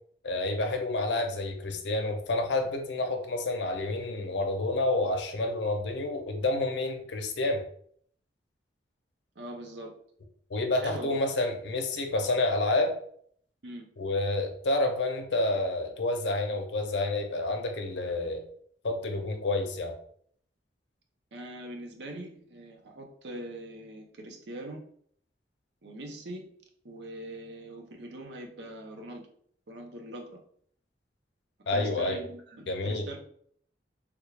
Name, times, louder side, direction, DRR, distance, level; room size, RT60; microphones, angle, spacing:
voice 1, 0.2-7.6 10.5-12.9 14.0-18.4 18.8-19.9 31.7-32.2 32.7-33.0, left 2 dB, 80° left, 4 dB, 0.6 m, -29 dB
voice 2, 9.4-9.9 10.8-11.1 13.6-13.9 21.3-24.8 25.8-26.5 26.8-29.2 29.7-30.4 31.7-33.2, right 1 dB, 70° right, 2 dB, 0.7 m, -42 dB
3.5 x 2.3 x 3.3 m, 0.62 s
head